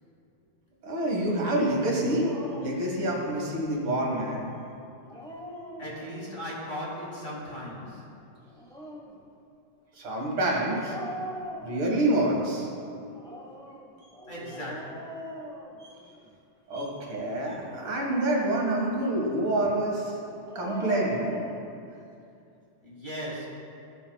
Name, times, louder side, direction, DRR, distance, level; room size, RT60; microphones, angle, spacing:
voice 1, 0.8-2.3 2.6-4.5 10.0-11.0 11.6-12.7 15.8-15.9 16.7-20.1 20.6-21.3, right 1 dB, 75° right, -2 dB, 2.6 m, -27 dB
Dog, 2.2-2.9 4.9-6.3 8.4-9.2 10.7-12.2 13.1-16.3 17.5-18.9 20.3-21.6, equal, 5° left, 0.9 m, -41 dB
voice 2, 5.8-8.1 14.3-15.2 22.8-23.5, equal, 25° left, -5 dB, 2.4 m, -37 dB
15.0 x 12.5 x 2.3 m, 2.6 s
omnidirectional pair, 2.3 m